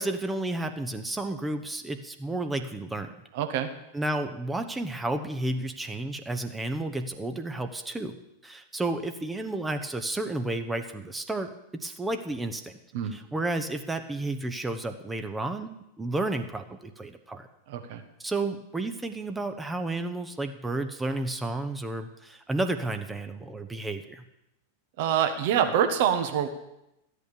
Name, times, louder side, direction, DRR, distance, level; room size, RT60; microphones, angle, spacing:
voice 1, 0.0-3.1 3.9-8.1 8.4-12.7 13.1-17.5 18.2-24.2, right 2 dB, 10° right, 7 dB, 1.0 m, -32 dB
voice 2, 3.3-3.7 12.9-13.1 17.7-18.0 25.0-26.5, right 9 dB, 50° right, 7 dB, 1.4 m, -25 dB
13.5 x 8.4 x 6.9 m, 0.87 s
figure-of-eight pair, 90°, 0 cm